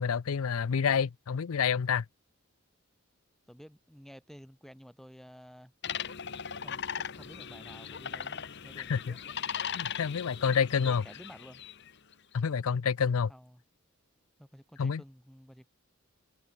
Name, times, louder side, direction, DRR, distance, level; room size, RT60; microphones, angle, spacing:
voice 1, 0.0-2.0 8.9-9.1 9.7-11.0 12.3-13.3 14.8-15.0, left 6 dB, 75° left, 0.5 m, -28 dB
voice 2, 3.5-5.7 6.6-9.2 10.8-11.6 13.3-13.6 14.4-15.7, equal, ahead, 6.7 m, -52 dB
sound 1, 5.8-11.9, left 7 dB, 50° left, 1.3 m, -39 dB
head